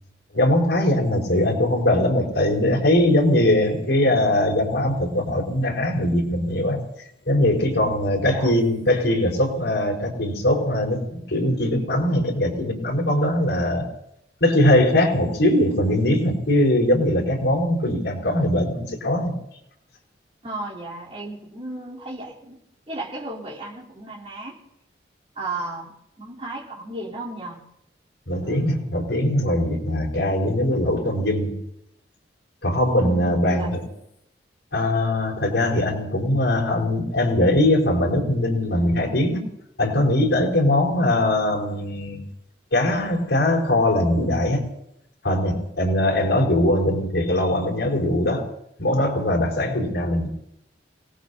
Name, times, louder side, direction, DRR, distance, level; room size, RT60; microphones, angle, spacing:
voice 1, 0.3-6.8 7.3-13.9 14.4-19.3 28.3-31.5 32.6-33.8 34.7-39.4 39.8-42.2 42.7-44.7 45.2-48.5 48.8-50.3, left 1 dB, 85° left, -2 dB, 4.9 m, -21 dB
voice 2, 7.8-8.5 20.4-22.6 22.9-24.6 25.4-27.6 28.4-28.9 33.0-34.0, right 2 dB, 35° right, -6 dB, 3.7 m, -35 dB
27.5 x 18.5 x 2.8 m, 0.80 s
head